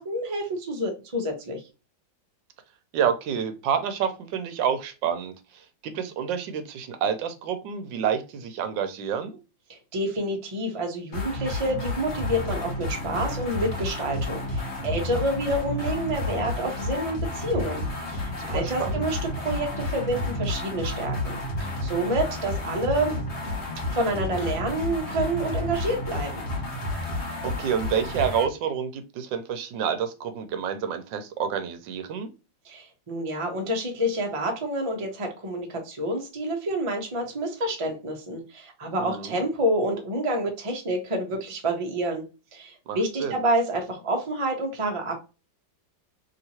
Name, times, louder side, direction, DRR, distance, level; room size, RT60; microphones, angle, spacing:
voice 1, 0.0-1.6 9.7-23.2 23.9-26.4 32.6-42.2 42.5-45.2, right 1 dB, 30° right, 1 dB, 0.6 m, -28 dB
voice 2, 2.9-5.3 5.8-9.4 18.4-19.0 27.4-32.3 39.0-39.4 42.9-43.4, right 8 dB, 80° right, 8 dB, 1.3 m, -28 dB
sound 1, 11.1-28.5, left 1 dB, 40° left, 1.3 m, -31 dB
3.3 x 2.9 x 2.7 m, 0.30 s
omnidirectional pair, 2.1 m